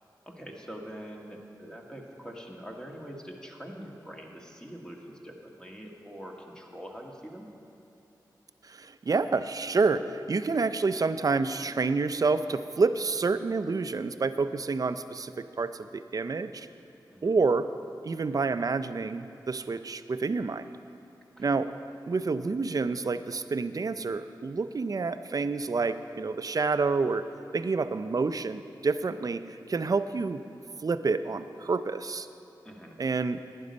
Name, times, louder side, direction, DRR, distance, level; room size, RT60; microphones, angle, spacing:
voice 1, 0.2-7.4 17.1-17.4 21.4-21.6 32.6-33.0, equal, 10° left, 0 dB, 1.7 m, -44 dB
voice 2, 8.6-16.7 17.2-17.7 18.0-20.7 21.4-21.7 22.1-27.3 27.5-30.4 30.8-32.3 33.0-33.4, right 4 dB, 50° right, 11 dB, 0.5 m, -28 dB
11.0 x 9.6 x 5.3 m, 2.9 s
cardioid pair, 55°, 8 cm